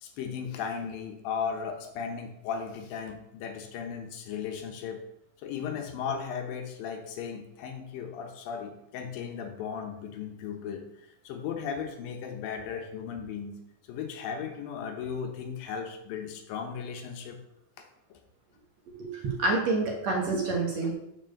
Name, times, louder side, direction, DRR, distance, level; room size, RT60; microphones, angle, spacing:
voice 1, 0.0-5.0 5.4-10.9 11.2-13.6 13.9-17.4 18.1-18.2, left 7 dB, 80° left, 4 dB, 2.7 m, -36 dB
voice 2, 18.9-20.9, right 3 dB, 60° right, -1 dB, 2.1 m, -28 dB
6.7 x 4.5 x 6.4 m, 0.84 s
omnidirectional pair, 4.0 m